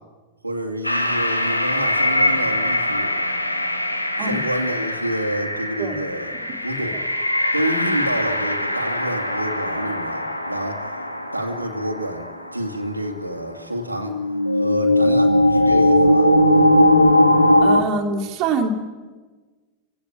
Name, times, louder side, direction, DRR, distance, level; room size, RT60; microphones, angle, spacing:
voice 1, 0.4-3.1 4.2-6.3 6.6-7.0 7.5-10.8 11.3-12.3 12.5-14.2 14.6-16.3, right 1 dB, 85° right, 2 dB, 2.4 m, -28 dB
sound 1, 0.8-12.6 13.0-13.1 14.0-17.8, left 1 dB, 85° left, 1.8 m, -20 dB
voice 2, 17.6-18.7, right 4 dB, 40° right, 0 dB, 2.8 m, -24 dB
28.5 x 17.0 x 9.0 m, 1.4 s
figure-of-eight pair, 90°, 0 cm